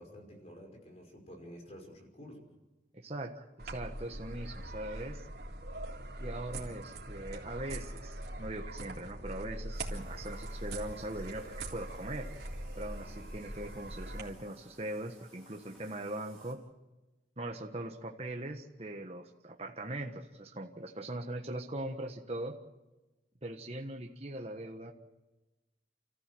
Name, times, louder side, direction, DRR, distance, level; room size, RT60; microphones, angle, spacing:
voice 1, 0.0-2.5, equal, 35° left, 2 dB, 5.7 m, -50 dB
voice 2, 2.9-5.3 6.2-12.3 12.8-16.6 17.4-22.6 23.4-24.9, right 1 dB, 35° right, 2 dB, 1.4 m, -41 dB
sound 1, 3.6-14.2, right 1 dB, 60° right, 3.5 m, -42 dB
Bathtub (filling or washing), 9.7-16.5, right 1 dB, 5° left, 5.9 m, -61 dB
29.5 x 14.5 x 7.8 m, 1.1 s
head